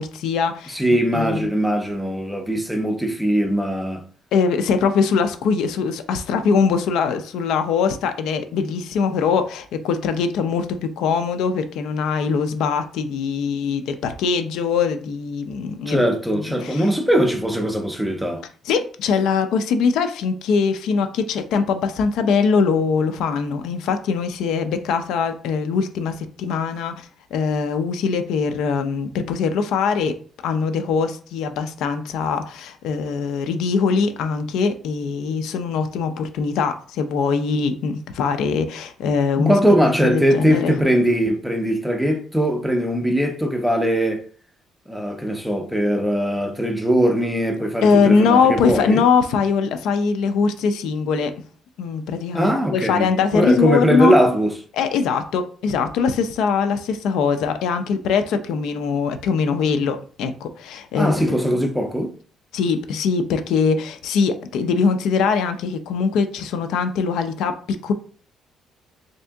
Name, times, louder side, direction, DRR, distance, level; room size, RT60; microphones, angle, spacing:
voice 1, 0.0-0.8 1.1-1.5 4.3-16.0 16.3-16.9 18.7-30.2 30.4-39.6 39.8-40.8 47.8-51.3 51.8-54.1 54.7-61.6 62.5-67.9, left 5 dB, 75° left, 0.5 m, -22 dB
voice 2, 0.7-4.0 15.9-18.4 39.4-44.3 44.9-49.0 52.3-54.5 61.0-62.1, equal, ahead, 0.5 m, -20 dB
3.6 x 2.7 x 3.4 m
cardioid pair, 175°, 0 cm